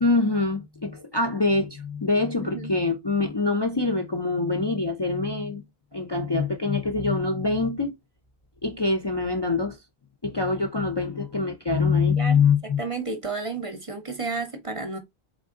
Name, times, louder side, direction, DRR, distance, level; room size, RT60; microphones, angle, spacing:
voice 1, 0.0-5.6 5.9-8.0 8.6-9.8 10.2-12.8, left 4 dB, 30° left, 0.5 m, -24 dB
voice 2, 12.2-15.0, right 4 dB, 35° right, 0.8 m, -32 dB
3.9 x 3.4 x 3.6 m
omnidirectional pair, 1.1 m